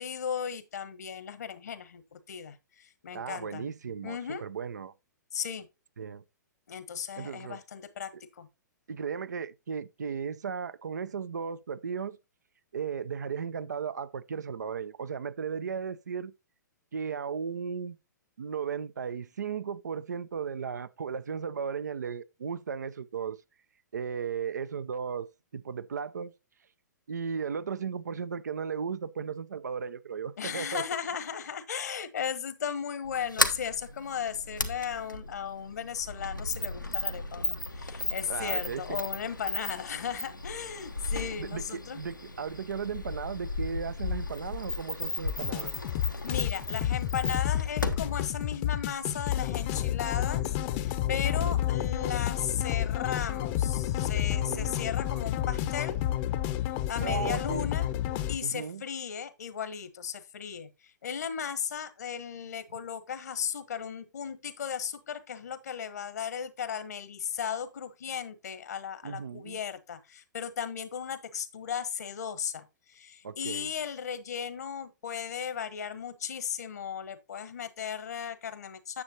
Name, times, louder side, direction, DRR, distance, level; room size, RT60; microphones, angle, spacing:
voice 1, 0.0-3.7 4.0-4.4 5.3-5.7 6.7-8.5 30.4-42.0 46.2-50.4 50.8-56.0 56.9-57.9 58.3-60.7 61.0-79.0, left 7 dB, 60° left, 1.2 m, -36 dB
voice 2, 3.1-4.9 6.0-6.2 7.2-7.6 8.9-12.2 12.7-16.3 16.9-18.0 18.4-23.4 23.9-26.3 27.1-30.8 38.3-39.0 41.4-41.6 41.9-45.7 51.4-51.6 54.3-54.8 57.0-57.7 58.4-58.8 69.0-69.6 73.2-73.7, right 6 dB, 65° right, 0.6 m, -35 dB
Sliding door, 33.0-49.4, left 2 dB, 90° left, 1.2 m, -35 dB
sound 1, 45.4-58.4, left 12 dB, 35° left, 0.8 m, -30 dB
9.7 x 7.2 x 2.8 m
figure-of-eight pair, 115°, 10 cm